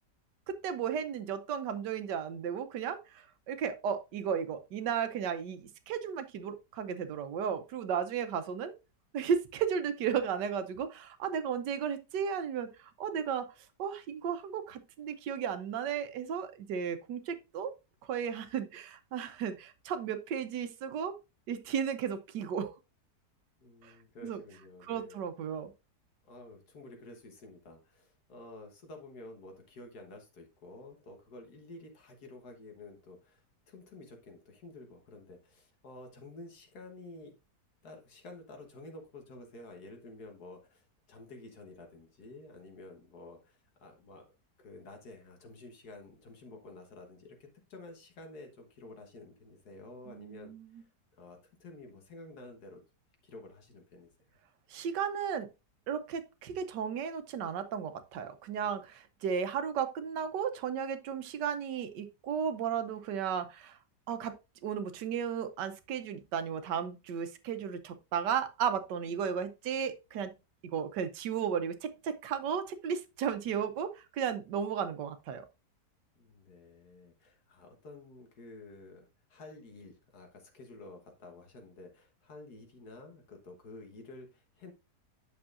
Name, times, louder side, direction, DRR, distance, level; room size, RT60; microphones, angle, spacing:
voice 1, 0.5-8.7 9.1-13.5 13.8-17.7 18.1-21.2 21.5-22.7 23.8-23.9 24.2-24.4 24.8-25.7 50.1-50.8 54.7-55.5 55.9-63.8 64.1-64.4 64.6-70.3 70.7-75.4, right 7 dB, 90° right, 1.4 m, -34 dB
voice 2, 23.6-25.3 26.2-37.3 37.8-44.3 44.6-47.4 47.7-52.8 53.2-54.1 76.1-84.7, left 2 dB, 65° left, 1.7 m, -51 dB
8.6 x 6.6 x 2.5 m
omnidirectional pair, 1.8 m